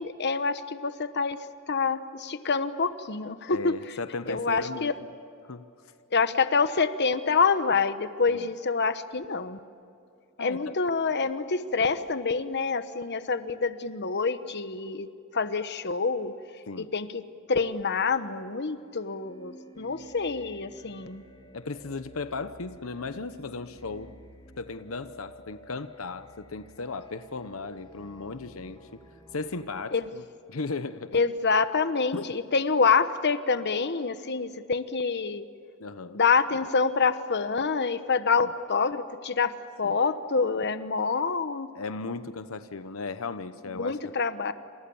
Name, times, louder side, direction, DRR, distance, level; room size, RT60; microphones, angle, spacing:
voice 1, 0.0-1.4 1.7-3.7 4.3-4.9 6.1-9.6 10.4-15.1 15.3-16.3 16.8-17.2 17.5-21.2 29.9-30.0 31.1-35.4 36.1-39.5 39.8-41.7 43.8-44.5, left 4 dB, 55° left, 11 dB, 1.1 m, -26 dB
voice 2, 3.5-4.9 5.4-5.7 8.3-8.4 10.4-10.7 16.7-16.9 21.5-24.1 24.6-29.0 29.3-30.2 30.5-31.2 32.1-32.2 35.8-36.2 39.8-40.0 41.7-44.1, left 3 dB, 80° left, 11 dB, 0.9 m, -36 dB
sound 1, 18.8-29.8, right 1 dB, 25° left, 2.9 m, -52 dB
28.5 x 27.5 x 7.1 m, 2.6 s
head